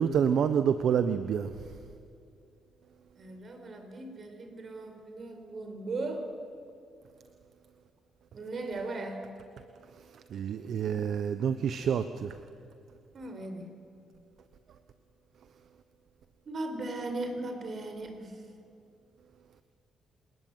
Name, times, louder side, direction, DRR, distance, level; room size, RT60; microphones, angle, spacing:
voice 1, 0.0-1.8 9.9-12.4, right 7 dB, 65° right, 1.0 m, -28 dB
voice 2, 3.2-6.3 8.3-9.2 13.1-13.7 16.4-18.4, right 2 dB, 45° right, 4.8 m, -38 dB
29.0 x 19.5 x 9.3 m
cardioid pair, 90°, 0 cm